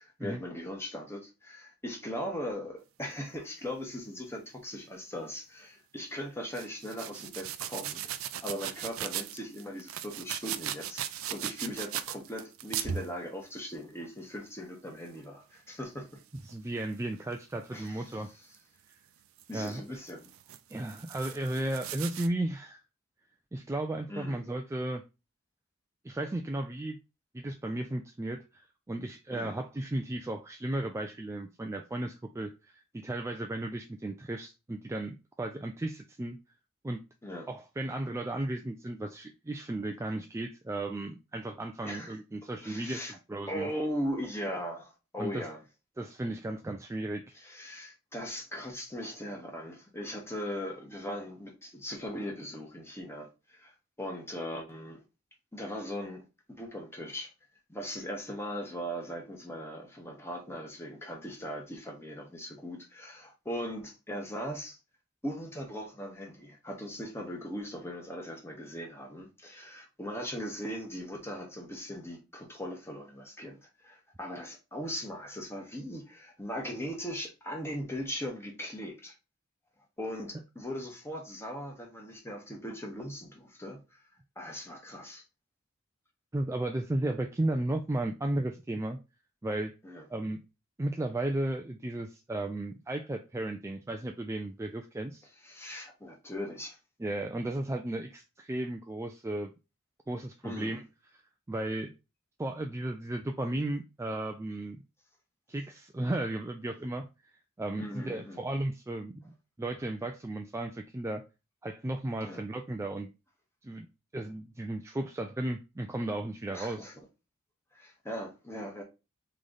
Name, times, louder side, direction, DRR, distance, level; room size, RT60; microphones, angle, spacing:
voice 1, 0.0-8.2 8.4-16.2 17.7-18.2 19.5-20.3 24.1-24.4 29.3-29.5 37.2-37.5 41.8-42.1 42.6-43.2 43.5-45.6 47.3-53.7 54.0-55.0 55.5-57.3 57.7-64.8 65.2-79.1 80.0-84.0 84.4-85.2 89.8-90.0 95.4-96.8 100.4-100.8 107.8-108.4 112.2-112.4 116.5-116.9 117.7-118.8, equal, 10° left, 1.2 m, -39 dB
sound 1, 6.5-13.1 16.4-16.6 17.3-17.4 18.5-18.6 19.4-19.7 20.1-22.3, right 10 dB, 90° right, 0.4 m, -38 dB
voice 2, 16.4-18.3 19.5-20.0 20.7-22.8 23.5-25.0 26.0-27.0 27.3-36.4 36.8-37.0 37.5-43.7 45.2-45.5 46.0-47.3 86.3-89.0 89.4-89.7 90.1-90.4 90.8-95.2 97.0-99.5 100.1-100.8 101.5-101.9 102.4-104.8 105.5-107.1 107.6-109.3 109.6-111.2 111.6-113.1 113.6-113.9 114.1-116.9, right 1 dB, 15° right, 0.3 m, -34 dB
3.8 x 3.2 x 3.8 m
head